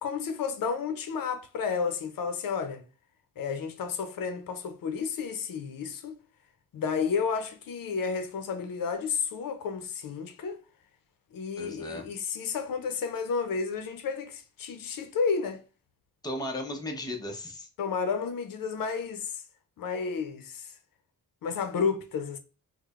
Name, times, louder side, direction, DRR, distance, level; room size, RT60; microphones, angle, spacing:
voice 1, 0.0-2.8 3.4-6.2 6.7-10.6 11.3-15.6 17.8-19.4 19.8-20.7 21.4-22.4, left 5 dB, 75° left, 0.6 m, -31 dB
voice 2, 11.6-12.1 16.2-17.7, left 1 dB, 10° left, 0.7 m, -36 dB
4.6 x 2.1 x 2.3 m
wide cardioid pair, 110°, 34 cm